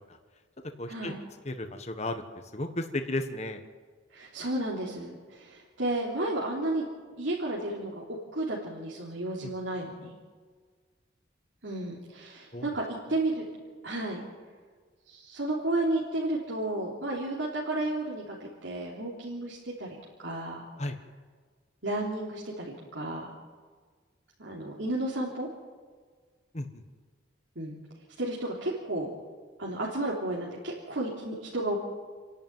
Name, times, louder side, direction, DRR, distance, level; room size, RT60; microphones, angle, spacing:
voice 1, 0.8-1.1 1.4-3.6 9.4-9.5 12.5-12.7 20.8-21.0 26.5-26.8, left 1 dB, 35° left, 6 dB, 1.3 m, -34 dB
voice 2, 4.1-6.9 7.2-10.2 11.6-13.4 13.8-14.2 15.1-20.6 21.8-23.3 24.4-25.5 27.5-27.8 28.2-29.1 29.6-31.8, right 2 dB, 75° right, -5 dB, 3.4 m, -32 dB
29.5 x 11.0 x 9.3 m, 1.5 s
head